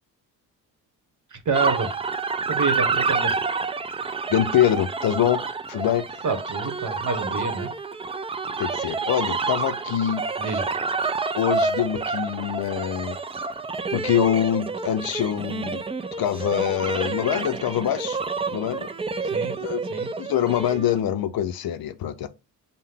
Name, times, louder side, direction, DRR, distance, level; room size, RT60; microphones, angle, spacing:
voice 1, 1.3-1.9 2.5-3.3 6.2-7.7 10.4-10.6 19.2-19.5 19.9-20.1, right 4 dB, 40° right, 1.2 m, -27 dB
sound 1, 1.5-21.0, right 4 dB, 15° right, 0.3 m, -28 dB
voice 2, 4.3-5.4 5.7-6.2 8.6-10.2 11.4-13.2 13.9-15.8 16.2-18.2 18.5-18.9 19.6-19.8 20.2-22.3, left 10 dB, 55° left, 0.5 m, -24 dB
5.4 x 2.2 x 3.4 m
supercardioid pair, 55°, 44 cm